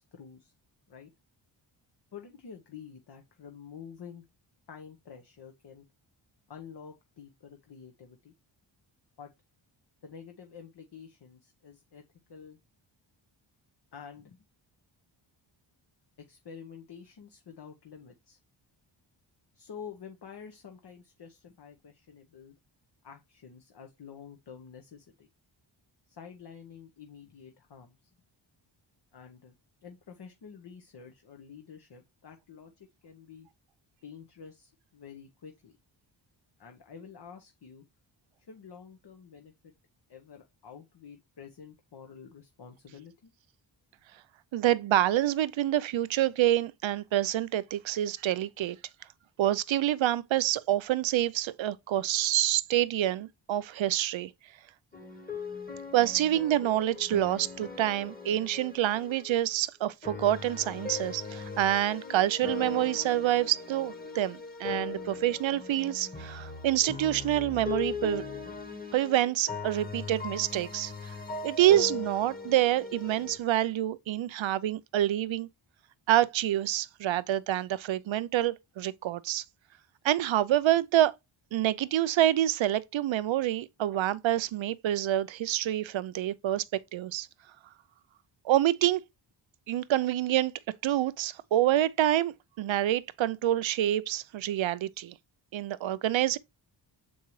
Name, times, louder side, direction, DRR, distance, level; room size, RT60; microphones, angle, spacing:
voice 1, 0.1-0.5 0.9-1.1 2.1-4.2 4.7-5.9 6.5-8.3 9.2-9.3 10.0-12.0 12.3-12.6 13.9-14.4 16.2-18.4 19.5-22.6 23.0-25.3 26.1-28.1 29.1-29.5 29.8-33.5 34.0-35.8 36.6-37.9 38.5-39.7 40.1-43.3, left 7 dB, 55° left, 1.0 m, -49 dB
voice 2, 44.5-48.8 49.4-54.3 55.9-68.2 68.9-71.1 71.4-75.5 76.1-79.4 80.0-81.1 81.5-86.6 86.9-87.3 88.4-89.0 89.7-90.5 90.8-95.1 95.5-96.4, right 13 dB, 70° right, 0.6 m, -27 dB
sound 1, 54.9-59.4 60.0-73.4, left 4 dB, 20° left, 1.3 m, -39 dB
7.0 x 4.6 x 3.1 m
wide cardioid pair, 95°, 48 cm